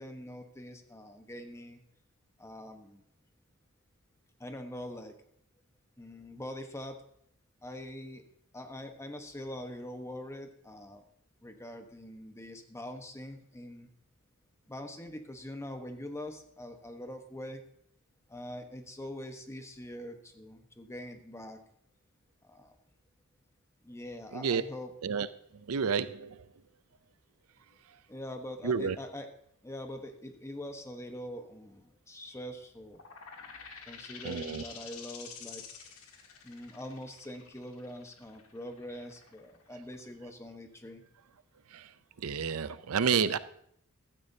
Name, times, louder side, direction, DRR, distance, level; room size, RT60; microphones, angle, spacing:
voice 1, 0.0-1.8 2.4-3.0 4.4-5.2 6.0-7.0 7.6-8.2 8.5-11.0 11.4-13.9 14.7-17.6 18.3-21.6 22.4-22.8 23.8-24.9 28.1-29.3 29.6-33.0 33.9-35.6 36.4-41.0, left 1 dB, 15° left, 1.2 m, -43 dB
voice 2, 25.7-26.3 28.6-29.0 34.2-34.6 41.7-41.8 42.2-43.4, right 6 dB, 90° right, 0.5 m, -29 dB
sound 1, 32.9-40.3, left 6 dB, 90° left, 1.7 m, -49 dB
16.0 x 13.0 x 2.8 m
head